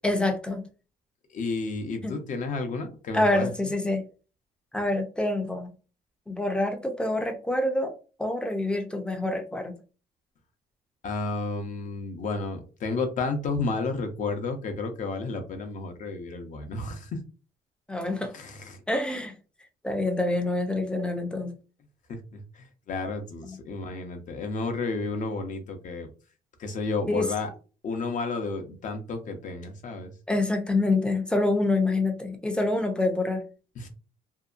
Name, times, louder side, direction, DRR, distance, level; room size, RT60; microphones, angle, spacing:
voice 1, 0.0-0.6 2.0-2.1 3.1-4.0 4.7-5.7 6.3-7.9 8.2-9.8 17.9-18.3 18.9-19.3 19.8-21.5 23.4-23.6 27.1-27.3 30.3-33.5, left 2 dB, 5° left, 5 dB, 0.5 m, -26 dB
voice 2, 1.3-3.5 11.0-17.2 18.3-18.8 22.1-26.1 26.6-27.5 27.8-30.1 33.8-33.9, left 3 dB, 50° left, 6 dB, 0.7 m, -32 dB
2.7 x 2.2 x 2.4 m, 0.35 s
cardioid pair, 110°, 17 cm